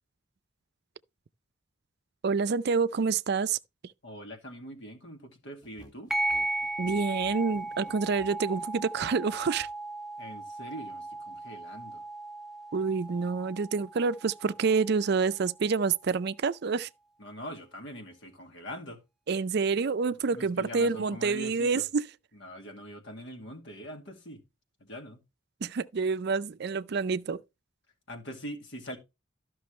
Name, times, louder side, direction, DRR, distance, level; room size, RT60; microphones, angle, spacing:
voice 1, 2.2-3.6 6.8-9.7 12.7-16.9 19.3-22.1 25.6-27.4, right 5 dB, 55° right, 0.4 m, -28 dB
voice 2, 4.0-6.1 10.2-12.0 17.2-19.0 20.3-21.8 22.4-24.4 24.8-25.2 28.1-29.0, equal, 60° left, 2.2 m, -43 dB
sound 1, 5.6-8.4, equal, 20° left, 1.8 m, -54 dB
sound 2, 6.1-15.1, right 2 dB, ahead, 0.6 m, -36 dB
13.0 x 6.0 x 3.2 m
head